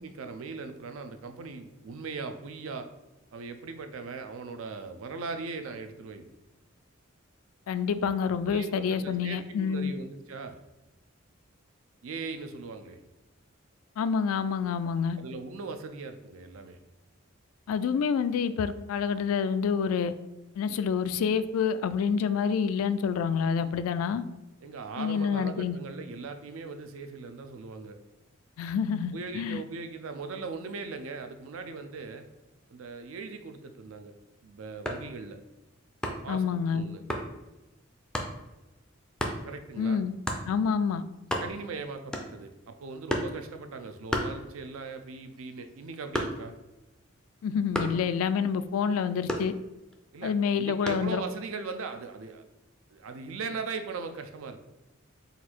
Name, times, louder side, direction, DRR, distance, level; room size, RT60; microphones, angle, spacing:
voice 1, 0.0-2.9 3.3-6.2 8.5-10.6 12.0-13.0 15.2-16.8 24.6-28.0 29.1-32.3 32.7-34.1 34.4-35.4 36.1-37.0 39.4-40.0 41.4-46.5 50.1-52.4 52.9-54.6, right 4 dB, 80° right, 8 dB, 0.5 m, -39 dB
voice 2, 7.7-9.9 14.0-15.2 17.7-20.1 20.6-24.2 25.0-25.8 28.6-29.6 36.3-36.9 39.8-40.1 40.5-41.0 47.4-49.5 50.2-51.2, left 6 dB, 90° left, 14 dB, 0.3 m, -28 dB
sound 1, 34.8-35.1 36.0-36.4 37.1-37.3 38.1-38.4 39.2-39.4 40.3-40.5 40.9-41.0 41.2-41.7 42.1-42.5 43.1-43.4 44.1-44.9 45.2-46.6 47.7-48.1 49.3-50.0 50.9-51.1, equal, 5° left, 0.3 m, -32 dB
4.0 x 2.5 x 4.4 m, 1.0 s
head